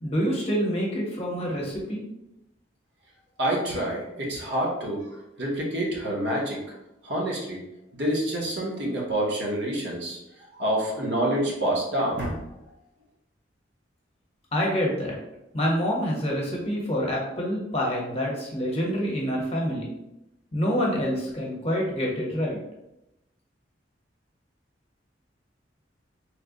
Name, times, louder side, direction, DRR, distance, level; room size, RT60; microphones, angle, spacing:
voice 1, 0.0-2.0 14.5-15.2 15.5-19.9 20.5-22.6, equal, 35° left, -3 dB, 0.9 m, -27 dB
voice 2, 3.4-5.1 5.4-6.6 7.0-7.6 7.9-10.2 10.6-12.4, right 1 dB, 65° right, -3 dB, 0.9 m, -27 dB
3.2 x 2.1 x 3.7 m, 0.88 s
head